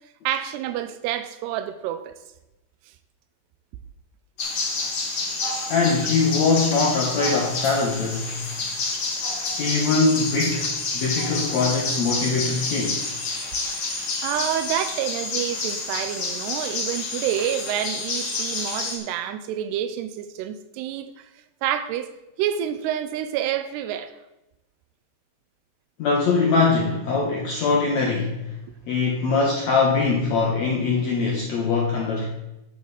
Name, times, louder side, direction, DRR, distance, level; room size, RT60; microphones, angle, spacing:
voice 1, 0.2-2.1 14.2-21.3 21.6-22.1 22.4-24.1, right 10 dB, 90° right, 10 dB, 2.7 m, -28 dB
sound 1, 4.4-19.0, left 3 dB, 45° left, 2.4 m, -29 dB
voice 2, 5.7-8.3 9.6-13.1 26.0-28.5 28.9-32.3, left 4 dB, 70° left, -1 dB, 1.6 m, -22 dB
10.5 x 9.4 x 4.0 m, 0.94 s
omnidirectional pair, 4.8 m